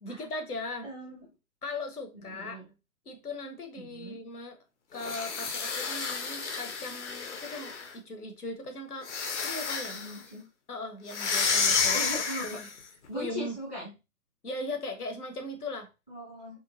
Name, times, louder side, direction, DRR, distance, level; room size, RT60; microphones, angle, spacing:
voice 1, 0.0-0.9 1.6-2.6 3.1-4.6 4.9-9.1 9.4-10.0 10.7-12.0 12.4-12.6 13.1-13.6 14.4-15.9, left 2 dB, 85° left, 0.8 m, -38 dB
voice 2, 0.8-1.2 2.2-2.7 3.8-4.2 9.9-10.4 11.9-12.7 13.1-13.9 16.1-16.6, equal, 10° left, 0.4 m, -39 dB
sound 1, 4.9-7.9 9.0-10.2 11.1-12.8, left 5 dB, 55° left, 0.6 m, -30 dB
2.9 x 2.2 x 2.4 m
figure-of-eight pair, 125°, 44 cm